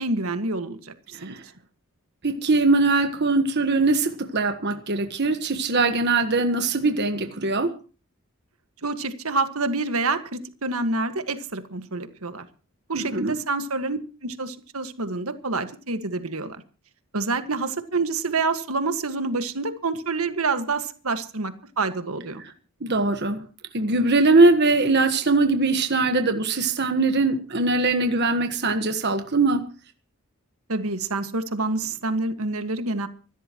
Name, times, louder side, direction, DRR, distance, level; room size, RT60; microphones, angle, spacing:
voice 1, 0.0-1.4 8.8-12.5 12.9-16.6 17.1-22.4 30.7-33.1, right 3 dB, 80° right, 9 dB, 1.8 m, -27 dB
voice 2, 2.2-7.7 12.9-13.4 22.8-23.4 23.7-29.6, right 3 dB, 50° right, 7 dB, 1.4 m, -21 dB
25.5 x 13.0 x 3.0 m, 0.37 s
head